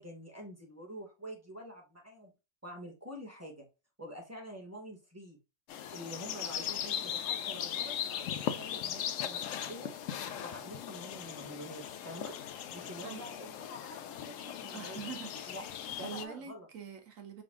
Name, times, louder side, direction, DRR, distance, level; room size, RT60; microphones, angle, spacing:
voice 1, 0.0-2.3 2.6-3.7 4.0-5.4 5.9-9.9 10.3-12.3 12.7-15.0 15.5-15.6 15.9-16.7, equal, 10° right, 1.1 m, -47 dB
sound 1, 5.7-16.2, left 9 dB, 75° left, 0.7 m, -38 dB
voice 2, 14.7-15.6 15.9-17.4, right 7 dB, 55° right, 1.2 m, -44 dB
5.3 x 2.5 x 3.6 m
omnidirectional pair, 1.8 m